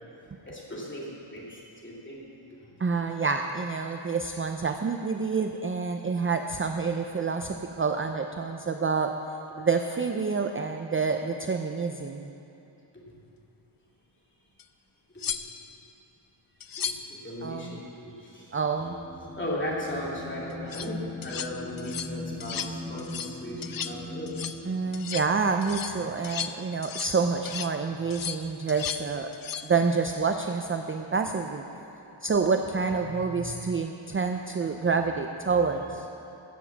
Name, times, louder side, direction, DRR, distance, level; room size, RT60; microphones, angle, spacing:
voice 1, 0.5-2.2 2.6-2.7 15.1-15.4 16.8-16.9 17.1-18.6 19.3-24.6 32.0-32.2, left 1 dB, 20° left, -5 dB, 2.6 m, -37 dB
voice 2, 2.8-9.1 9.6-12.3 17.4-17.8 18.5-19.0 24.6-29.3 29.6-31.6 32.2-36.1, right 4 dB, 25° right, 5 dB, 0.4 m, -28 dB
sound 1, 14.6-14.7 15.2-15.8 16.6-17.1 20.5-20.9 21.2-21.5 21.8-22.1 22.4-22.7 23.0-23.4 23.6-24.0 24.3-24.6 24.9-25.3 25.6-27.2 27.5-27.7 28.1-29.1 29.3-29.7 32.3-32.5, left 8 dB, 45° left, 0.5 m, -35 dB
sound 2, 18.8-24.7, left 1 dB, 5° left, 1.2 m, -39 dB
15.5 x 7.2 x 7.2 m, 2.9 s
wide cardioid pair, 155°, 50 cm